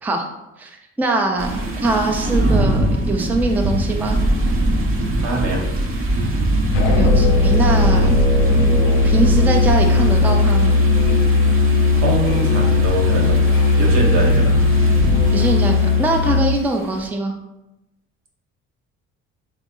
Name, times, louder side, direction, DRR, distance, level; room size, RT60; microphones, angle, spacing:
voice 1, 0.6-4.2 7.0-8.1 9.0-10.7 15.3-17.3, right 2 dB, 5° right, 2 dB, 0.4 m, -22 dB
sound 1, 1.4-16.7, right 1 dB, 40° right, 0.7 m, -22 dB
voice 2, 5.2-5.6 12.0-13.4 13.8-14.6, right 2 dB, 75° right, -1 dB, 0.9 m, -23 dB
Musical instrument, 6.7-16.6, left 3 dB, 90° left, 0.5 m, -17 dB
3.4 x 2.0 x 3.7 m, 0.92 s
supercardioid pair, 70°, 32 cm